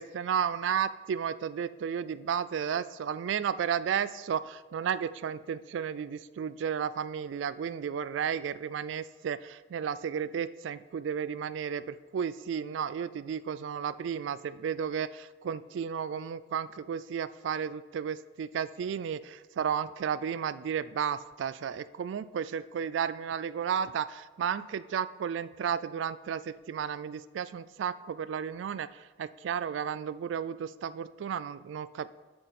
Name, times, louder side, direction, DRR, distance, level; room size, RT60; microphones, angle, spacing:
voice 1, 0.0-32.1, right 7 dB, 90° right, 17 dB, 0.3 m, -33 dB
8.1 x 7.7 x 4.2 m, 1.2 s
head